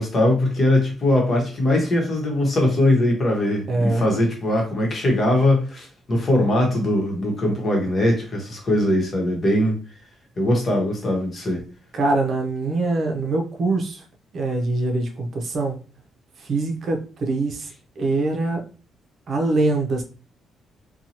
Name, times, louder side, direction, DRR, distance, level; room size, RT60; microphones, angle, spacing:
voice 1, 0.0-9.8 10.4-11.6, left 1 dB, 40° left, 1.1 m, -21 dB
voice 2, 3.7-4.1 11.9-14.0 14.3-15.8 16.4-17.7 18.0-18.6 19.3-20.0, right 2 dB, 55° right, 0.6 m, -23 dB
2.7 x 2.3 x 2.9 m
cardioid pair, 90°, 0 cm